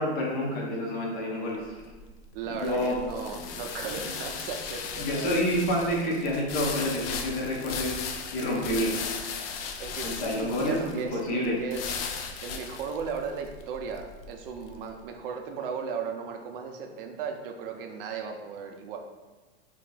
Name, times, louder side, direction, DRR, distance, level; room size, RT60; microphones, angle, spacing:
voice 1, 0.0-1.8 2.5-3.0 5.0-9.1 9.7-11.6, equal, 25° left, -2 dB, 0.7 m, -29 dB
sound 1, 1.6-14.9, left 6 dB, 60° left, 0.4 m, -37 dB
voice 2, 2.3-5.3 9.8-12.0 12.4-19.0, right 5 dB, 55° right, 4 dB, 0.5 m, -36 dB
2.8 x 2.4 x 3.8 m, 1.3 s
supercardioid pair, 155°, 33 cm